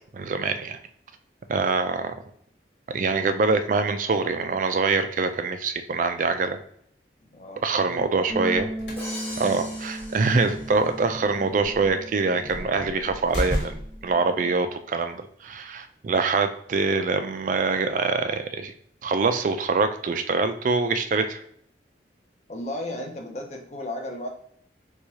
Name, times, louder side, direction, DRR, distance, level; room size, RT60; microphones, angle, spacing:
voice 1, 0.1-0.8 1.5-2.1 2.9-6.6 7.6-8.7 9.4-18.7 19.0-21.4, right 4 dB, 45° right, 9 dB, 0.3 m, -24 dB
voice 2, 7.3-8.2 22.5-24.3, left 1 dB, 40° left, 2 dB, 0.6 m, -35 dB
Bass guitar, 8.3-14.5, right 1 dB, 20° right, 0.8 m, -37 dB
sound 1, 8.6-14.1, right 1 dB, 85° left, 1.3 m, -35 dB
Crash cymbal, 9.0-11.2, left 1 dB, 10° left, 1.2 m, -40 dB
4.5 x 2.3 x 2.7 m, 0.66 s
head